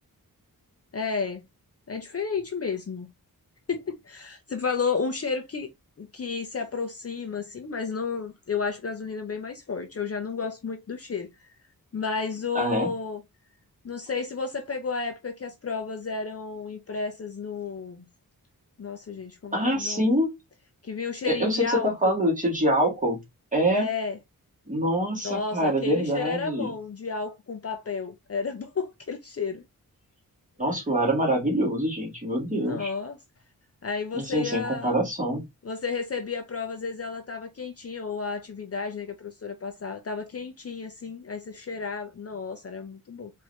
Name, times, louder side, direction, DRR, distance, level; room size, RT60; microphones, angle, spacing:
voice 1, 0.9-1.4 1.9-3.1 3.7-5.7 6.0-11.3 11.9-13.2 13.8-18.0 18.8-20.1 20.8-22.1 23.7-24.2 25.2-29.6 32.5-33.2 33.8-35.0 35.6-43.3, left 5 dB, 40° left, 0.7 m, -32 dB
voice 2, 12.5-12.9 19.5-20.4 21.3-23.2 23.5-23.9 24.7-26.7 30.6-32.9 34.1-35.4, equal, 20° right, 2.0 m, -25 dB
4.5 x 2.8 x 3.2 m
wide cardioid pair, 145°, 36 cm